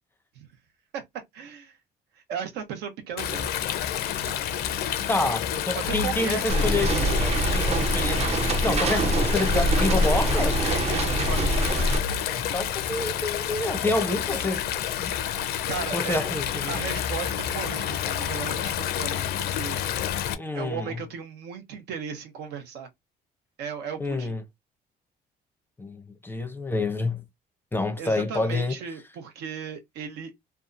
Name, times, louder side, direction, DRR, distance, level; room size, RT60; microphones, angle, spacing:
voice 1, 1.3-1.8 2.1-3.6 5.8-6.9 10.8-11.9 15.7-16.3 16.7-19.8 20.5-22.9 23.6-24.3 28.0-30.3, right 7 dB, 85° right, 0.8 m, -36 dB
Stream, 3.2-20.3, left 10 dB, 70° left, 0.4 m, -29 dB
voice 2, 5.1-10.6 12.3-14.7 15.0-15.1 15.9-16.8 20.4-21.0 24.0-24.4 25.8-27.2 27.7-28.8, left 2 dB, 10° left, 0.4 m, -28 dB
sound 1, 6.5-12.0, right 1 dB, 40° right, 0.6 m, -24 dB
2.8 x 2.3 x 2.4 m
cardioid pair, 110°, 17 cm